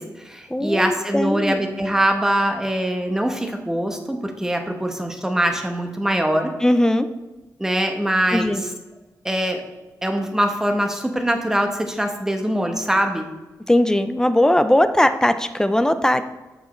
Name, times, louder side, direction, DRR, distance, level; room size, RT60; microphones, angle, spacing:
voice 1, 0.0-6.5 7.6-8.6 9.2-9.6 10.0-13.3, right 1 dB, 5° right, 4 dB, 1.1 m, -23 dB
voice 2, 0.5-1.6 6.6-7.1 8.3-8.6 13.7-16.2, left 1 dB, 10° left, 10 dB, 0.4 m, -19 dB
14.0 x 4.7 x 3.1 m, 1.1 s
wide cardioid pair, 120°, 7 cm